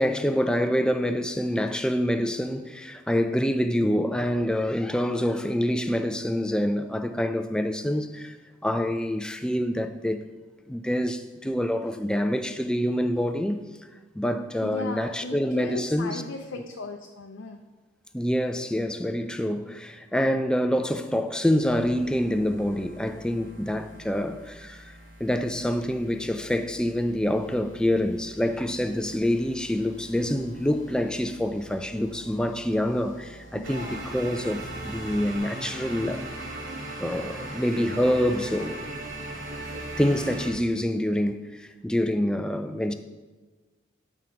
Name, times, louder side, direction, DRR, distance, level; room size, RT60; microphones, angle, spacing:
voice 1, 0.0-8.4 8.6-10.3 10.7-13.6 14.2-16.2 18.1-36.3 37.0-38.9 40.0-42.9, equal, 5° left, 0.3 m, -26 dB
voice 2, 14.6-17.6 33.5-34.0, left 3 dB, 85° left, 0.5 m, -36 dB
sound 1, 21.6-35.4, right 1 dB, 45° right, 1.0 m, -49 dB
sound 2, 33.6-40.5, right 2 dB, 80° right, 1.8 m, -36 dB
9.3 x 3.6 x 5.7 m
head